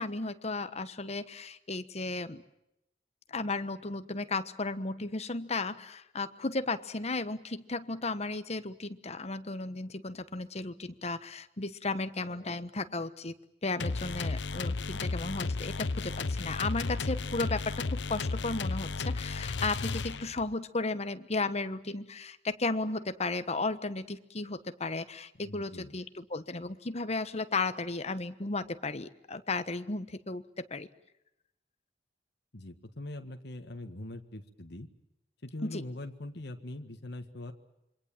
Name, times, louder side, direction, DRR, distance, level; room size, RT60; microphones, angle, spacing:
voice 1, 0.0-2.4 3.3-13.3 13.6-30.9 35.6-35.8, left 3 dB, 40° left, 12 dB, 1.2 m, -34 dB
sound 1, 13.8-20.5, left 3 dB, 85° left, 0.9 m, -33 dB
voice 2, 25.4-25.9 32.5-34.9 35.4-37.5, left 1 dB, 65° left, 4 dB, 1.7 m, -42 dB
27.0 x 24.0 x 7.4 m, 0.86 s
head